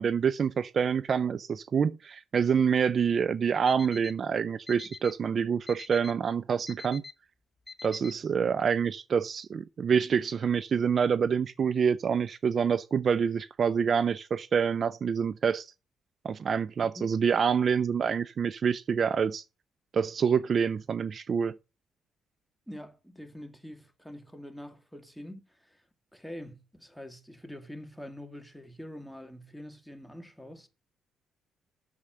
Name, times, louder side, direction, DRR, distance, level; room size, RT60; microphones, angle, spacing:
voice 1, 0.0-7.0 7.8-15.7 16.2-19.4 19.9-21.5, right 6 dB, 50° right, 0.5 m, -27 dB
Alarm, 3.7-4.1 4.7-5.1 5.7-6.1 6.7-7.1 7.7-8.1, left 4 dB, 20° left, 1.1 m, -43 dB
voice 2, 22.7-25.8 26.1-30.7, equal, ahead, 2.1 m, -45 dB
8.6 x 7.0 x 6.3 m
cardioid pair, 90°, 0 cm